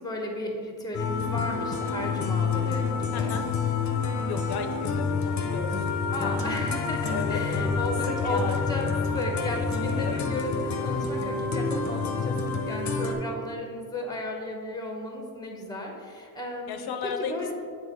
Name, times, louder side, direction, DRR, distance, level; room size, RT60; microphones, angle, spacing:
voice 1, 0.0-3.4 6.1-12.3 12.6-16.7 17.0-17.5, left 1 dB, 10° left, 1 dB, 1.0 m, -34 dB
sound 1, 0.9-13.2, left 4 dB, 50° left, 0.7 m, -28 dB
voice 2, 3.1-3.4 4.3-5.7 7.1-7.4 8.1-8.7 10.0-10.3 16.7-17.5, left 6 dB, 85° left, 6 dB, 0.6 m, -34 dB
7.6 x 3.0 x 4.5 m, 2.1 s
cardioid pair, 100°, 37 cm